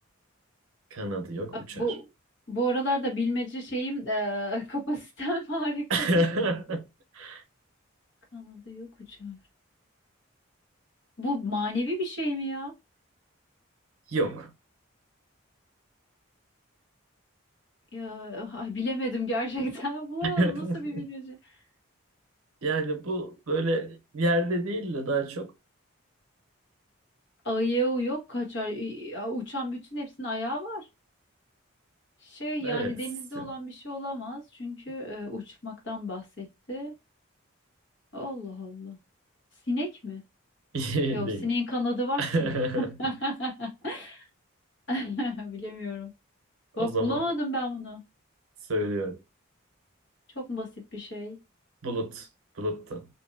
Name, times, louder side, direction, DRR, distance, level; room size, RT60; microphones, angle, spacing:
voice 1, 0.9-1.8 5.9-6.8 7.1-7.4 14.1-14.5 20.2-21.0 22.6-25.5 32.6-33.0 33.3-33.5 40.7-41.5 42.2-43.0 46.8-47.2 48.7-49.2 51.8-52.3 52.6-53.1, right 1 dB, 85° right, 0.7 m, -28 dB
voice 2, 1.5-2.0 2.5-6.2 7.3-7.4 8.3-9.4 11.2-12.7 17.9-21.5 27.4-30.9 32.2-36.9 38.1-39.0 39.7-40.2 41.1-44.3 44.9-46.1 46.8-48.0 50.3-51.4, equal, 55° left, 1.2 m, -32 dB
2.7 x 2.6 x 2.5 m
head